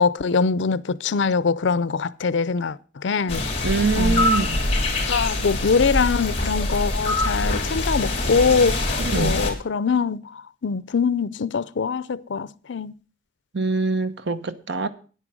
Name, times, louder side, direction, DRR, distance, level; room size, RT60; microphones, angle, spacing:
voice 1, 0.0-3.4 3.9-4.2 5.1-12.9, left 5 dB, 85° left, 0.5 m, -23 dB
sound 1, 3.3-9.5, left 2 dB, 35° left, 3.3 m, -24 dB
voice 2, 3.6-4.6 9.0-9.3 13.5-14.9, right 3 dB, 70° right, 1.0 m, -24 dB
9.8 x 9.0 x 6.2 m
head